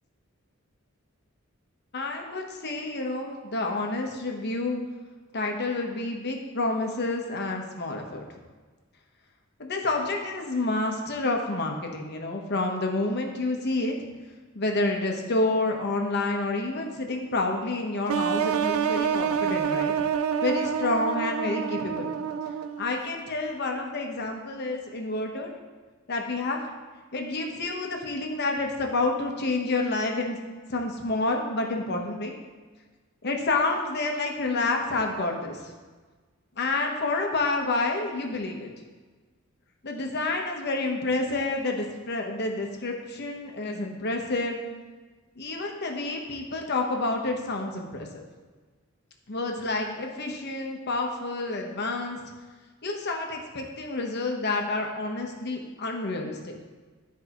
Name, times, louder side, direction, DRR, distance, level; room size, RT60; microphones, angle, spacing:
voice 1, 1.9-4.8 5.3-8.3 9.6-14.0 14.5-19.9 20.4-22.1 22.8-25.5 26.1-26.6 27.1-30.4 30.7-32.3 33.2-35.7 36.6-38.7 39.8-44.6 45.4-48.2 49.3-52.2 52.8-56.5, left 2 dB, 55° left, 2 dB, 1.0 m, -29 dB
sound 1, 18.1-22.9, right 7 dB, 85° right, 0.4 m, -27 dB
12.5 x 4.7 x 3.0 m, 1.4 s
head